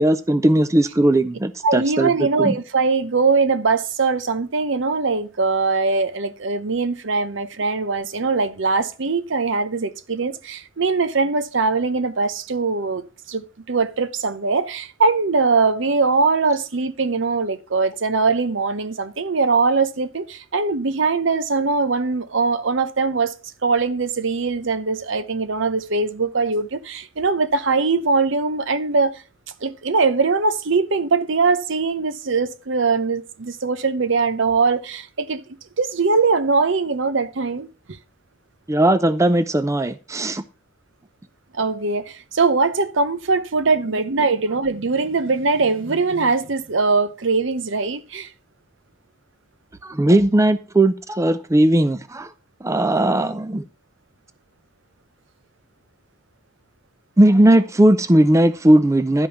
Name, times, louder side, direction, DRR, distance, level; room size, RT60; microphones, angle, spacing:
voice 1, 0.0-2.5 38.7-40.4 49.8-52.3 52.6-53.6 57.2-59.3, right 1 dB, 15° right, 0.4 m, -17 dB
voice 2, 1.6-23.3 23.6-29.2 29.6-35.4 35.8-37.7 41.5-48.3, right 4 dB, 65° right, 0.8 m, -21 dB
11.5 x 5.3 x 5.7 m
head